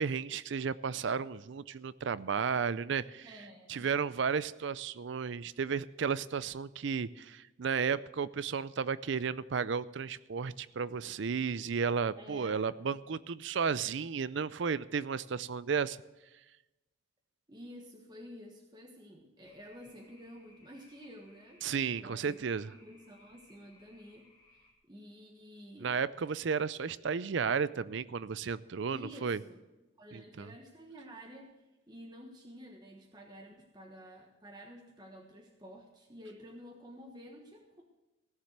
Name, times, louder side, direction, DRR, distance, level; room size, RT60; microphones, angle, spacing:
voice 1, 0.0-3.3 3.7-16.0 21.6-22.7 25.8-29.4 30.1-30.5, right 6 dB, 60° right, 17 dB, 0.4 m, -33 dB
voice 2, 3.0-3.9 12.2-12.6 17.5-21.6 22.0-22.4 22.7-26.0 28.9-29.6 30.0-31.5 31.9-37.8, equal, 20° right, 1 dB, 1.3 m, -51 dB
sound 1, 19.4-24.7, left 2 dB, 20° left, 2.6 m, -64 dB
16.0 x 7.3 x 6.6 m, 1.1 s
head